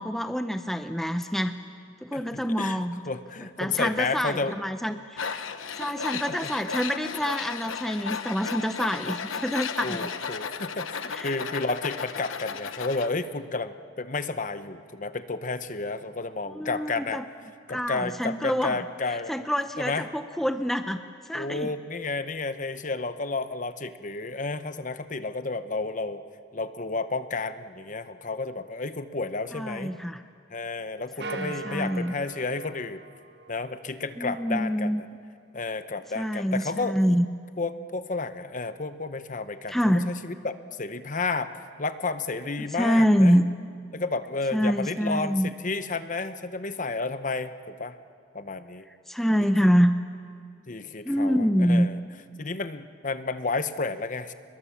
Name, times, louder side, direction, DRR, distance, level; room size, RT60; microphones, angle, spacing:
voice 1, 0.0-1.6 2.0-3.0 3.6-5.4 5.8-10.0 11.1-11.3 16.5-17.2 17.7-18.7 19.3-21.0 21.3-21.7 29.5-30.2 31.2-32.1 34.2-35.0 36.1-37.3 39.7-40.1 42.7-43.4 44.5-45.5 49.1-50.0 51.0-51.9, equal, ahead, 8 dB, 0.6 m, -26 dB
voice 2, 2.1-2.8 3.1-4.6 5.8-6.5 7.0-7.1 9.8-17.2 17.7-19.3 19.8-20.0 21.3-26.2 26.5-30.0 30.5-33.0 33.5-34.9 35.5-37.0 37.6-43.4 43.9-48.0 48.3-48.9 49.6-49.7 50.7-52.0 52.4-54.3, left 3 dB, 40° left, 11 dB, 0.8 m, -31 dB
Tools, 5.2-13.1, left 6 dB, 85° left, 1.1 m, -34 dB
sound 1, 31.2-33.9, right 3 dB, 55° right, 1.4 m, -40 dB
30.0 x 21.5 x 7.1 m, 2.3 s
head